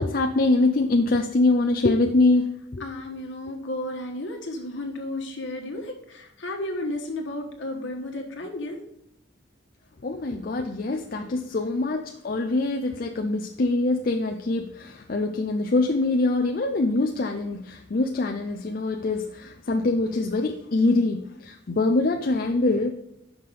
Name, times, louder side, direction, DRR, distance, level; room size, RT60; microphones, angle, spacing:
voice 1, 0.0-2.5 2.7-2.8 10.0-22.9, left 2 dB, 50° left, 4 dB, 0.5 m, -24 dB
voice 2, 2.8-8.8 11.2-11.3, left 1 dB, 70° left, 1 dB, 1.4 m, -33 dB
5.9 x 5.6 x 5.0 m, 0.82 s
head